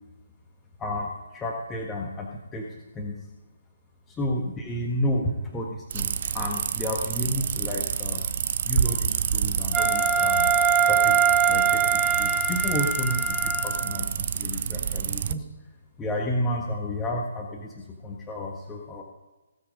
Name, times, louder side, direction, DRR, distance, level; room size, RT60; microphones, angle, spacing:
voice 1, 0.8-2.7 2.9-3.1 4.1-8.2 8.6-10.5 10.8-11.2 11.5-15.5 16.0-19.0, left 1 dB, 10° left, 0 dB, 1.4 m, -31 dB
sound 1, 5.9-15.3, right 8 dB, 45° right, 0.7 m, -28 dB
Wind instrument woodwind instrument, 9.7-14.0, right 6 dB, 10° right, 0.7 m, -23 dB
17.5 x 7.6 x 5.3 m, 1.1 s
figure-of-eight pair, 140°, 0 cm